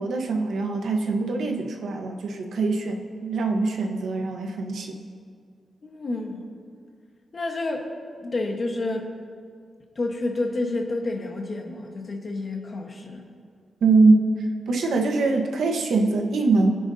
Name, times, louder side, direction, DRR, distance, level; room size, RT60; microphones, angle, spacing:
voice 1, 0.0-5.0 13.8-14.3 14.7-16.7, right 3 dB, 80° right, 3 dB, 1.3 m, -23 dB
voice 2, 5.8-6.4 7.3-7.8 8.2-9.1 9.9-13.2, left 2 dB, 35° left, 1 dB, 1.4 m, -29 dB
23.5 x 10.0 x 2.8 m, 2.1 s
wide cardioid pair, 165°, 0 cm